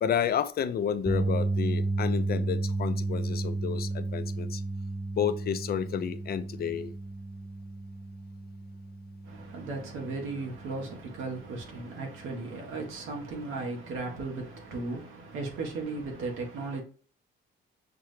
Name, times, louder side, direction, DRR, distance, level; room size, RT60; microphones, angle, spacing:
voice 1, 0.0-4.6 5.2-6.9, left 8 dB, 50° left, 0.5 m, -31 dB
sound 1, 1.1-13.3 13.6-13.9 16.1-16.2, right 2 dB, 10° right, 0.5 m, -33 dB
voice 2, 9.2-16.8, right 3 dB, 90° right, 1.3 m, -36 dB
5.9 x 2.1 x 3.1 m
cardioid pair, 90°, 20 cm